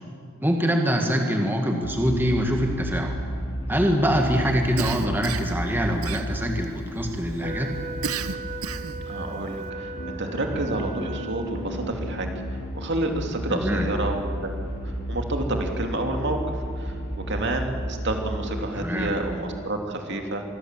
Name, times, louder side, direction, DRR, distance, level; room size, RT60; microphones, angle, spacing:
voice 1, 0.4-3.1 3.7-7.7 13.5-13.9 18.7-19.1, equal, 10° right, 2 dB, 1.8 m, -24 dB
sound 1, 1.8-19.5, equal, 70° left, 4.4 m, -33 dB
Cough, 4.8-5.6 6.0-6.6 8.0-9.0, right 6 dB, 85° right, 1.1 m, -32 dB
Wind instrument woodwind instrument, 7.4-11.8, right 3 dB, 35° right, 1.7 m, -38 dB
voice 2, 9.1-12.3 12.7-14.5 14.8-17.0 17.3-20.4, right 2 dB, 55° right, 3 dB, 2.7 m, -29 dB
26.0 x 21.5 x 7.5 m, 2.3 s
head